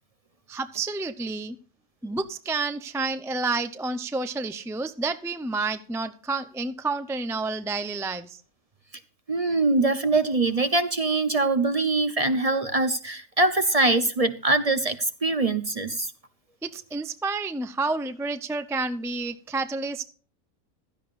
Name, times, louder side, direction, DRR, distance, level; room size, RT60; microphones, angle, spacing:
voice 1, 0.5-1.6 2.0-8.4 16.6-20.0, right 3 dB, 5° right, 9 dB, 0.4 m, -30 dB
voice 2, 9.3-16.1, right 2 dB, 35° right, 11 dB, 0.7 m, -23 dB
16.0 x 13.0 x 2.5 m, 0.40 s
omnidirectional pair, 1.5 m